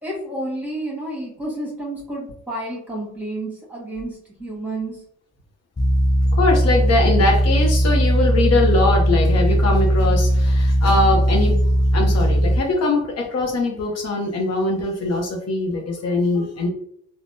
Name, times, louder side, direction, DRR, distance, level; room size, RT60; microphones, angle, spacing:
voice 1, 0.0-5.0, right 1 dB, 5° right, -3 dB, 1.3 m, -30 dB
sound 1, 5.8-12.6, equal, 15° left, 0.3 m, -18 dB
voice 2, 6.4-11.6 11.9-16.7, left 2 dB, 55° left, 1 dB, 0.7 m, -21 dB
3.3 x 2.0 x 2.6 m, 0.69 s
cardioid pair, 90°, 30 cm